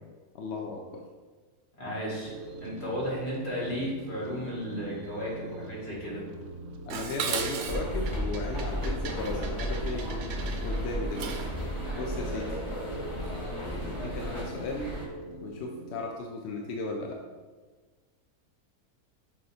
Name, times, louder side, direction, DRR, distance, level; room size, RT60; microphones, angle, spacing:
voice 1, 0.3-1.0 6.9-10.1 10.6-11.4 11.9-12.6 13.9-14.9 15.4-17.2, left 2 dB, 60° left, 1 dB, 0.7 m, -35 dB
voice 2, 1.8-2.3 2.6-6.2 11.4-11.5, equal, 45° left, -6 dB, 2.2 m, -34 dB
sound 1, 2.2-16.0, right 1 dB, 70° right, 1.0 m, -43 dB
Dishes pots and pans, 6.9-11.6, right 6 dB, 85° right, 1.1 m, -37 dB
sound 2, 7.6-15.0, equal, 20° left, 1.3 m, -34 dB
6.3 x 3.0 x 4.9 m, 1.4 s
omnidirectional pair, 1.5 m